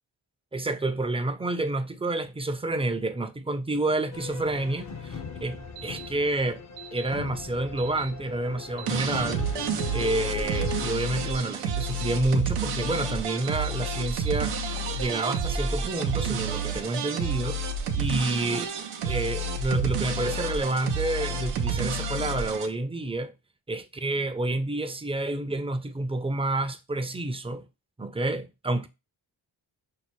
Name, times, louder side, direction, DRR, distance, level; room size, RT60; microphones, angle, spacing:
voice 1, 0.5-6.6 6.9-9.5 9.9-14.7 14.9-17.6 18.0-18.7 19.1-23.3 23.7-27.7 28.0-28.9, right 2 dB, 10° right, 0.5 m, -29 dB
sound 1, 4.1-11.0, left 7 dB, 35° left, 0.6 m, -38 dB
sound 2, 5.8-6.1 6.8-7.1 7.8-8.1 8.8-9.1 9.8-10.1 10.8-11.1 11.8-12.1 12.7-13.0 13.4-13.8 14.1-15.5, right 14 dB, 60° right, 0.9 m, -43 dB
sound 3, 8.9-22.7, right 4 dB, 90° right, 0.7 m, -30 dB
5.5 x 2.1 x 3.0 m
supercardioid pair, 40°, 50 cm